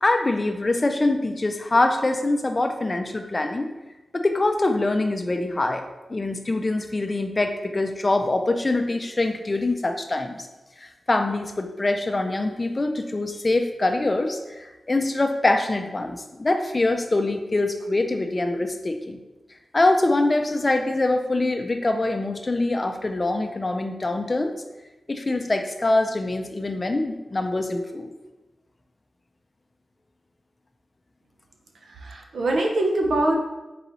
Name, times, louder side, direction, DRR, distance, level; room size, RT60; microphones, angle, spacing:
voice 1, 0.0-3.7 4.1-10.5 10.8-19.2 19.7-24.5 25.1-28.1, left 2 dB, 30° left, 5 dB, 0.4 m, -24 dB
voice 2, 31.8-33.4, right 1 dB, 80° right, 1 dB, 0.7 m, -23 dB
4.0 x 3.8 x 3.0 m, 1.1 s
wide cardioid pair, 100°, 0 cm